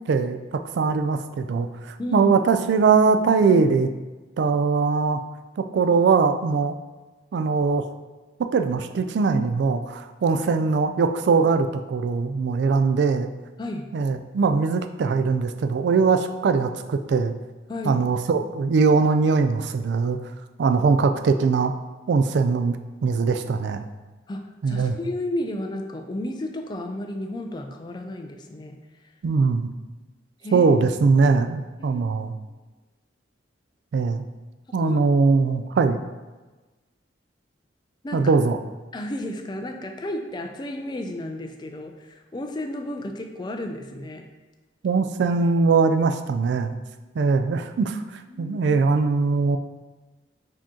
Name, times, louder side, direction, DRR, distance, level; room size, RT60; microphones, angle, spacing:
voice 1, 0.1-3.9 4.4-5.2 5.6-6.8 7.3-7.9 8.4-13.3 13.9-17.3 17.8-20.2 20.6-21.7 22.1-22.8 23.0-23.8 24.6-24.9 29.2-29.7 30.5-32.3 33.9-34.2 34.7-36.0 38.1-38.6 44.8-46.7 47.2-48.0 48.4-49.6, right 4 dB, 65° right, 7 dB, 0.3 m, -21 dB
voice 2, 2.0-2.3 13.6-13.9 17.7-18.0 24.3-28.8 30.4-30.7 31.8-32.0 34.7-35.0 38.0-38.3 38.9-44.3 48.3-48.6, left 1 dB, 25° left, 4 dB, 0.3 m, -32 dB
4.9 x 2.8 x 3.7 m, 1.2 s
head